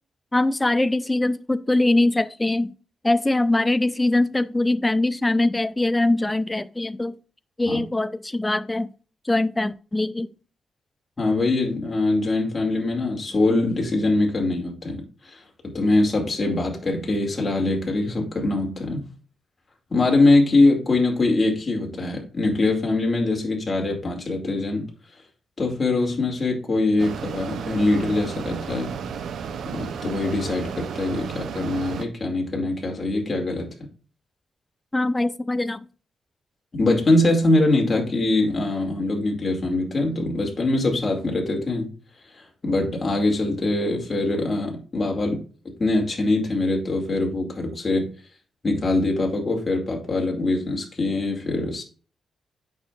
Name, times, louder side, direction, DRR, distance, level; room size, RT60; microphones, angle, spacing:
voice 1, 0.3-2.7 3.0-7.2 7.6-8.9 9.2-10.3 34.9-35.9, left 2 dB, 15° left, 0.4 m, -22 dB
voice 2, 11.2-19.1 19.9-24.9 25.6-28.9 29.7-33.7 36.7-41.9 42.3-45.4 45.8-48.1 48.6-51.8, left 2 dB, 30° left, 2.3 m, -23 dB
Mechanisms, 27.0-32.1, right 6 dB, 80° right, 0.6 m, -33 dB
8.6 x 6.2 x 2.4 m
cardioid pair, 125°, 0 cm